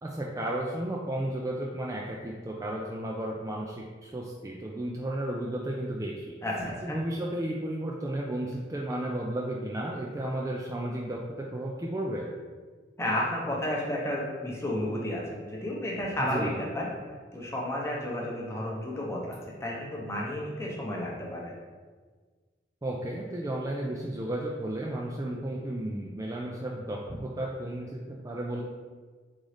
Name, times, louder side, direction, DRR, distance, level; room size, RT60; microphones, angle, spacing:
voice 1, 0.0-6.3 6.8-12.3 16.2-16.6 22.8-28.6, right 1 dB, 15° right, -3 dB, 0.3 m, -33 dB
voice 2, 6.4-7.0 13.0-16.9 17.3-21.5, left 1 dB, 15° left, -3 dB, 0.7 m, -32 dB
3.9 x 3.7 x 3.3 m, 1.5 s
head